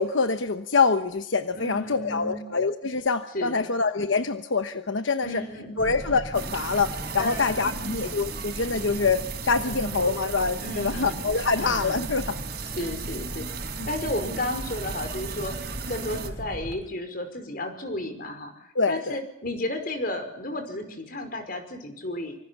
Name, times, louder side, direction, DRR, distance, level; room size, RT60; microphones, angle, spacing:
voice 1, 0.0-5.4 5.8-12.4 13.8-13.9 18.7-19.2, left 4 dB, 85° left, 9 dB, 1.1 m, -25 dB
voice 2, 1.5-2.4 3.3-3.6 5.2-5.8 7.2-7.8 9.6-10.1 10.6-11.3 11.6-12.1 12.7-13.5 13.9-15.6 15.9-22.4, left 1 dB, 50° left, 8 dB, 5.3 m, -33 dB
sound 1, 5.8-16.8, equal, 5° right, 7.3 m, -38 dB
sound 2, 6.3-16.3, right 6 dB, 55° right, 4.5 m, -37 dB
26.0 x 25.0 x 7.2 m, 0.77 s
head